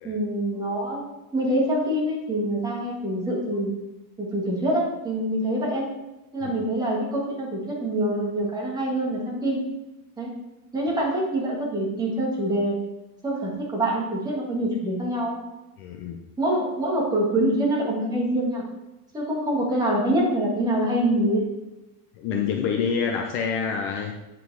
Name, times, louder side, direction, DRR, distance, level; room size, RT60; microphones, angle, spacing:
voice 1, 0.0-1.0 1.3-3.7 4.2-5.8 6.3-9.6 10.2-10.3 10.7-12.8 13.2-15.4 16.4-18.6 19.1-21.4, right 1 dB, 10° right, -4 dB, 1.8 m, -25 dB
voice 2, 15.8-16.2 22.2-24.1, left 6 dB, 30° left, 3 dB, 0.4 m, -27 dB
9.4 x 6.0 x 4.7 m, 1.0 s
cardioid pair, 175°, 47 cm